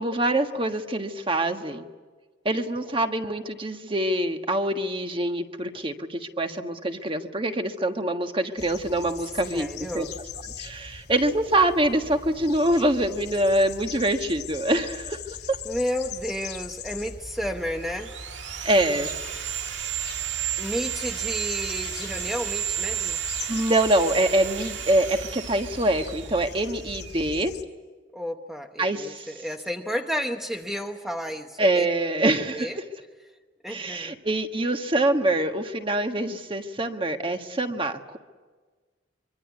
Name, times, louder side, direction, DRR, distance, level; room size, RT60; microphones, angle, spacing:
voice 1, 0.0-1.9 2.4-10.1 10.6-15.2 15.5-15.6 18.6-19.1 23.5-27.5 28.8-29.3 31.6-32.7 33.7-38.2, right 1 dB, 25° right, 6 dB, 1.5 m, -25 dB
European Goldfinch bird, 8.6-27.6, left 5 dB, 55° left, 2.3 m, -41 dB
voice 2, 9.5-10.1 15.6-18.2 20.6-23.2 28.1-31.9 32.5-32.8 33.6-34.2, equal, ahead, 4 dB, 0.9 m, -32 dB
Sawing, 17.4-27.3, right 11 dB, 70° right, 1.8 m, -33 dB
25.0 x 24.0 x 9.5 m, 1.4 s
head